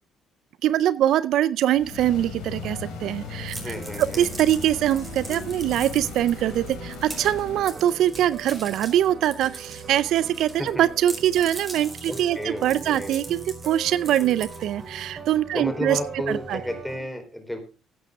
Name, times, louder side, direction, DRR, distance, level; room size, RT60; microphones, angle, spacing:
voice 1, 0.6-16.0 16.3-16.6, right 11 dB, 70° right, 17 dB, 0.5 m, -23 dB
sound 1, 1.7-7.8, left 5 dB, 80° left, 4.0 m, -38 dB
sound 2, 2.4-17.0, right 4 dB, 45° right, 3.5 m, -41 dB
sound 3, 3.5-10.7 11.0-15.0, right 3 dB, 30° right, 4.9 m, -41 dB
voice 2, 3.6-4.4 10.6-10.8 12.1-13.2 15.5-17.6, left 1 dB, 5° left, 6 dB, 4.1 m, -32 dB
15.0 x 9.1 x 3.6 m, 0.33 s
supercardioid pair, 80°, 0 cm